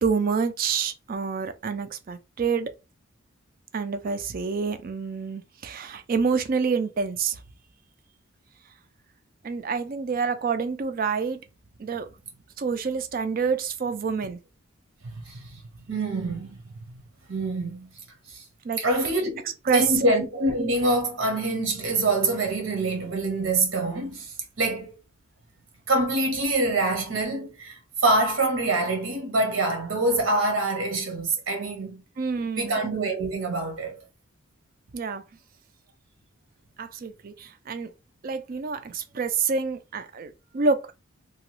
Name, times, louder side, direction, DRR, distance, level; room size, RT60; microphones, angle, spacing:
voice 1, 0.0-2.7 3.7-7.4 9.4-11.4 11.8-12.1 12.6-14.4 18.6-18.8 19.7-20.1 32.2-32.8 34.9-35.2 36.8-37.9 38.2-40.9, right 5 dB, 45° right, 0.4 m, -27 dB
voice 2, 15.0-15.6 15.9-16.6 17.3-17.9 18.3-18.4 18.8-24.9 25.9-32.0 32.6-33.9, right 2 dB, 80° right, 0.9 m, -25 dB
2.9 x 2.3 x 3.0 m
head